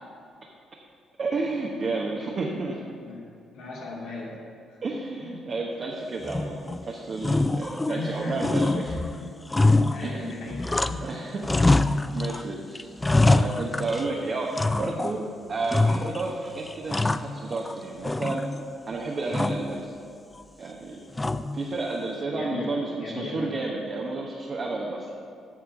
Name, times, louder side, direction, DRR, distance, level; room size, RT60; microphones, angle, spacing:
voice 1, 1.2-2.8 4.8-8.9 10.0-10.4 11.0-12.9 13.2-18.4 18.9-19.9 20.6-21.0 21.5-25.1, right 3 dB, 50° right, -2 dB, 1.1 m, -31 dB
voice 2, 3.5-4.4 5.2-5.5 7.9-9.3 9.9-11.0 11.3-11.5 22.3-23.5, left 2 dB, 80° left, -6 dB, 2.6 m, -36 dB
sound 1, 6.2-6.8 7.2-8.1 8.4-11.1 11.4-12.4 12.7-14.1 14.6-15.2 15.7-16.3 16.7-17.7 18.0-18.8 19.3-19.7 21.2-21.7, left 2 dB, 20° left, 0.4 m, -24 dB
8.7 x 6.3 x 6.0 m, 2.4 s
supercardioid pair, 55°, 0 cm